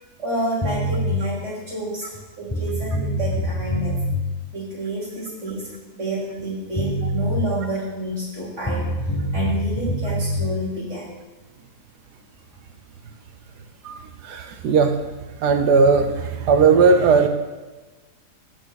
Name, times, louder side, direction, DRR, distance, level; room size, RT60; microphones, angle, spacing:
voice 1, 0.2-3.9 4.5-8.9 9.3-11.1, right 2 dB, 45° right, -8 dB, 4.3 m, -29 dB
sound 1, 0.6-1.1 2.1-2.2 2.5-4.2 6.4-6.5 6.7-7.4 8.6-10.4, equal, 15° left, 1.3 m, -25 dB
voice 2, 13.8-15.0 15.4-17.3, right 5 dB, 80° right, 7 dB, 1.5 m, -17 dB
15.0 x 6.7 x 4.1 m, 1.2 s
omnidirectional pair, 1.7 m